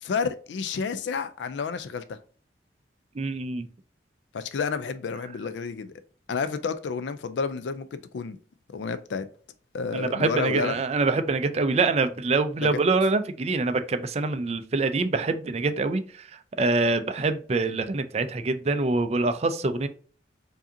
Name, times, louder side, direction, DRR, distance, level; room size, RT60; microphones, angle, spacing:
voice 1, 0.0-2.2 4.3-5.9 6.3-8.4 8.7-9.3 9.7-10.7 12.6-12.8, left 5 dB, 80° left, 0.4 m, -30 dB
voice 2, 3.2-3.7 9.9-16.3 16.6-19.9, right 3 dB, 35° right, 0.4 m, -25 dB
4.8 x 2.7 x 2.6 m
head